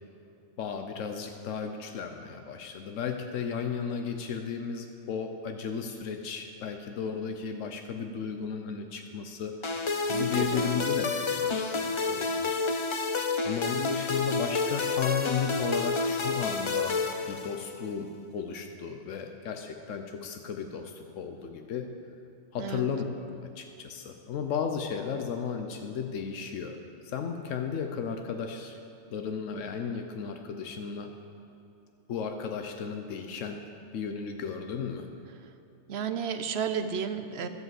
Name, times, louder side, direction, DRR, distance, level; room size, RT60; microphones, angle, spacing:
voice 1, 0.6-12.6 13.4-17.0 17.3-21.9 22.5-26.8 27.0-28.8 29.1-31.1 32.1-33.6 33.9-35.1, left 6 dB, 90° left, 5 dB, 1.1 m, -34 dB
sound 1, 9.6-17.9, left 4 dB, 45° left, 0.4 m, -29 dB
voice 2, 10.1-10.9 22.6-22.9 35.9-37.5, right 7 dB, 60° right, 9 dB, 0.9 m, -33 dB
12.5 x 7.8 x 7.6 m, 2.9 s
omnidirectional pair, 1.3 m